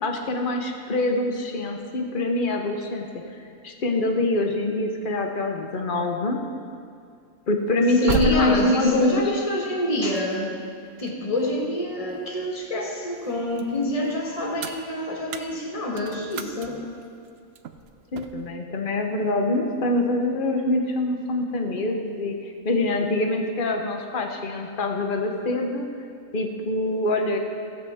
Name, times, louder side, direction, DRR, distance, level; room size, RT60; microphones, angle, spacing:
voice 1, 0.0-3.1 3.6-6.4 7.5-9.2 18.1-25.9 26.3-27.4, left 2 dB, 40° left, 3 dB, 1.0 m, -24 dB
sound 1, 7.6-12.7 13.1-18.5, right 6 dB, 65° right, 0.6 m, -35 dB
voice 2, 8.0-10.5 11.0-16.8, left 1 dB, 25° left, -1 dB, 1.5 m, -27 dB
16.5 x 7.6 x 3.5 m, 2.3 s
omnidirectional pair, 1.5 m